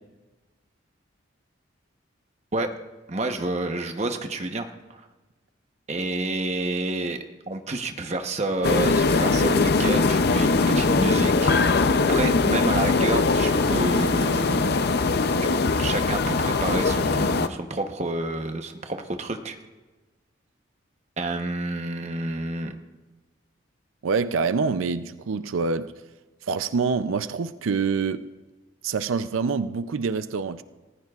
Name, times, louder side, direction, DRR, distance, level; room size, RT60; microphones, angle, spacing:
voice 1, 3.1-5.0 5.9-7.2 7.5-11.5 12.1-14.8 15.8-19.6 21.2-22.7, right 2 dB, 35° right, 1.0 m, -29 dB
sound 1, 8.6-17.5, left 3 dB, 50° left, 0.5 m, -21 dB
voice 2, 24.0-25.9 26.4-28.3 28.8-30.6, right 5 dB, 90° right, 0.5 m, -26 dB
28.5 x 15.0 x 2.4 m
head